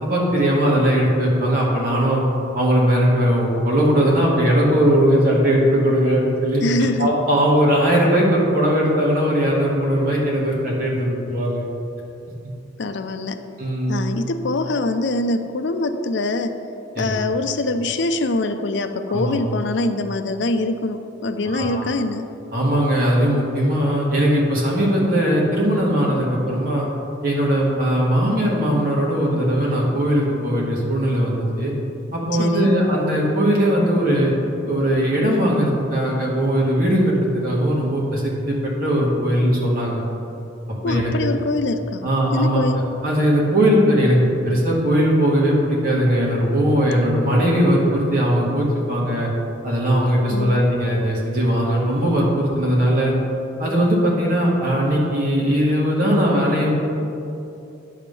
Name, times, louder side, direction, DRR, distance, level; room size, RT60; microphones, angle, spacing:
voice 1, 0.0-2.2 2.5-6.6 7.0-11.6 13.6-14.0 17.0-17.2 19.1-19.4 21.5-21.8 22.5-26.9 27.2-31.7 32.1-34.3 34.7-40.0 40.8-41.3 42.0-49.3 49.6-53.1 53.6-56.7, equal, 50° right, -4 dB, 1.9 m, -19 dB
voice 2, 6.6-7.1 12.8-13.4 13.9-16.6 17.0-22.3 32.3-32.7 40.8-42.0 42.3-42.8 50.3-50.6, left 2 dB, 65° left, 8 dB, 0.5 m, -24 dB
10.0 x 3.6 x 6.8 m, 2.7 s
head